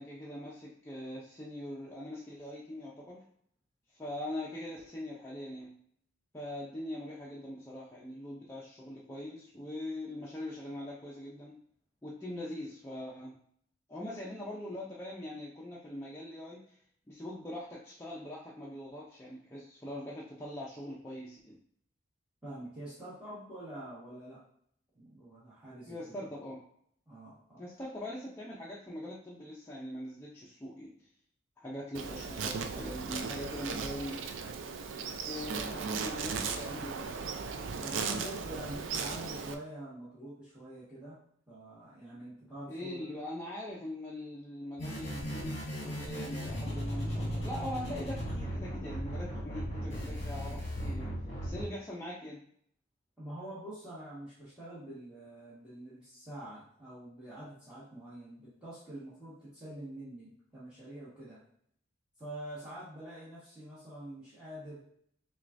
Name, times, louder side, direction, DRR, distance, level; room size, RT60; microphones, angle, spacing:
voice 1, 0.0-3.2 3.9-5.7 6.3-11.6 12.0-13.4 13.9-16.8 17.1-21.6 25.9-26.6 27.6-31.1 31.6-34.2 35.0-37.2 42.7-51.1 51.4-52.4, left 1 dB, 15° left, -6 dB, 0.5 m, -42 dB
voice 2, 22.4-24.4 24.9-26.2 27.1-27.6 37.7-41.2 41.5-43.1 53.2-61.4 62.2-64.8, right 1 dB, 5° right, -13 dB, 1.3 m, -46 dB
Insect, 31.9-39.5, right 5 dB, 75° right, 0.4 m, -37 dB
sound 1, 44.8-51.6, equal, 35° left, 1.3 m, -36 dB
6.3 x 2.3 x 2.5 m, 0.65 s
head